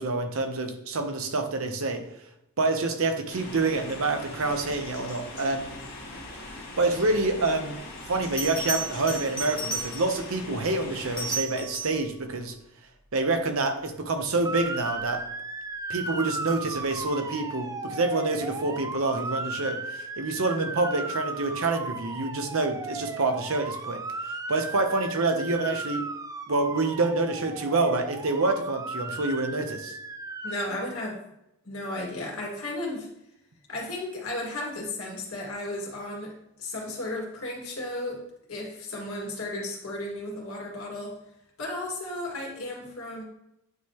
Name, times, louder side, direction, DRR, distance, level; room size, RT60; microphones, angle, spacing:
voice 1, 0.0-2.1 2.6-5.8 6.5-7.8 8.1-12.5 13.1-15.2 15.9-24.0 24.5-26.1 26.5-29.9, right 3 dB, 75° right, 6 dB, 0.9 m, -27 dB
sound 1, 3.3-11.4, left 2 dB, 50° left, 1.8 m, -41 dB
Bell, 8.4-10.3 11.0-12.1 14.8-15.0, right 2 dB, 5° left, 1.2 m, -33 dB
Motor vehicle (road) / Siren, 14.4-30.7, right 3 dB, 15° right, 0.3 m, -36 dB
voice 2, 30.4-31.2 31.6-33.1 33.7-36.3 36.6-41.2 41.6-43.2, left 1 dB, 75° left, -2 dB, 2.1 m, -34 dB
9.1 x 3.7 x 3.0 m, 0.83 s
head